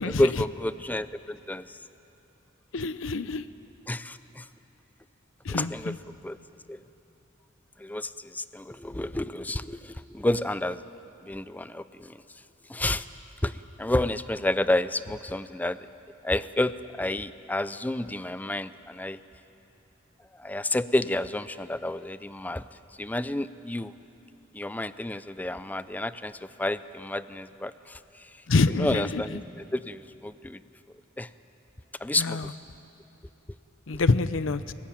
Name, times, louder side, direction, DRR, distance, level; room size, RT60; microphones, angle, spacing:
voice 1, 0.0-1.8 3.9-4.5 5.5-6.4 6.7-6.8 7.8-10.8 11.3-12.2 12.7-13.1 13.4-15.9 16.2-19.2 20.4-22.7 23.0-23.9 24.5-28.0 28.7-30.6 31.2-31.3 32.0-32.5, left 1 dB, 10° left, 14 dB, 0.4 m, -30 dB
voice 2, 2.7-3.4 5.5-6.0 28.5-29.2 32.2-32.5 33.9-34.7, left 3 dB, 80° left, 14 dB, 0.7 m, -26 dB
23.5 x 14.5 x 10.0 m, 3.0 s
head